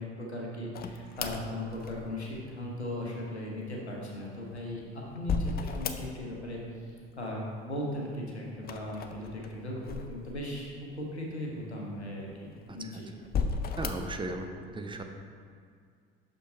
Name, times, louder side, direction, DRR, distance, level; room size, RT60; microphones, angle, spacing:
voice 1, 0.0-6.6 7.2-13.1, left 1 dB, 85° left, -2 dB, 1.0 m, -37 dB
sound 1, 0.7-2.4 4.2-6.5 6.7-7.4 8.6-10.7 11.3-11.4 12.2-12.8 13.2-14.2, left 5 dB, 30° left, 0.5 m, -35 dB
voice 2, 12.7-13.0 13.8-14.5 14.7-15.0, right 2 dB, 15° right, 4 dB, 0.6 m, -36 dB
6.5 x 5.4 x 4.2 m, 2.1 s
figure-of-eight pair, 55°, 32 cm